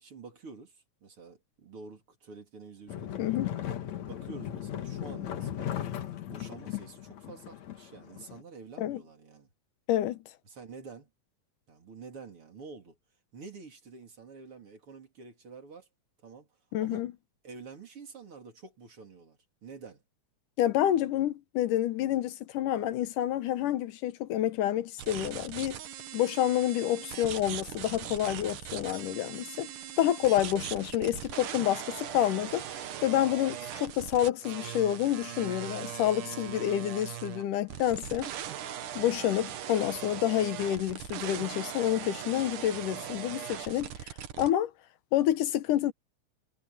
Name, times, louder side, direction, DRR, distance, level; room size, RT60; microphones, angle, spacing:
voice 1, 0.0-3.5 4.1-5.8 6.3-9.5 10.5-11.1 11.7-13.0 13.3-15.9 16.2-16.5 16.8-17.1 17.4-20.0, right 4 dB, 45° right, 3.9 m, -48 dB
sound 1, 2.9-8.4, left 11 dB, 65° left, 2.7 m, -37 dB
voice 2, 3.2-3.5 8.8-9.0 9.9-10.2 16.7-17.1 20.6-25.8 26.1-29.7 30.0-32.6 33.0-38.3 39.0-44.1 44.4-44.7 45.1-45.9, left 12 dB, 85° left, 2.7 m, -28 dB
sound 2, 25.0-44.5, right 10 dB, 80° right, 2.9 m, -40 dB
omnidirectional pair, 3.6 m